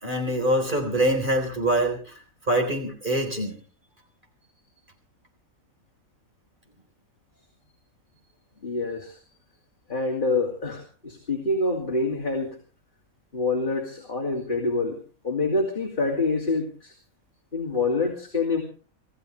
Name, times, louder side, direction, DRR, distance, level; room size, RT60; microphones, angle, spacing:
voice 1, 0.0-2.1 2.5-3.6, right 1 dB, 35° right, 2 dB, 4.4 m, -24 dB
voice 2, 8.6-9.2 9.9-12.6 13.3-15.0 15.2-16.9 17.5-18.6, left 3 dB, 35° left, 0 dB, 2.8 m, -26 dB
26.5 x 15.0 x 3.3 m, 0.38 s
omnidirectional pair, 1.5 m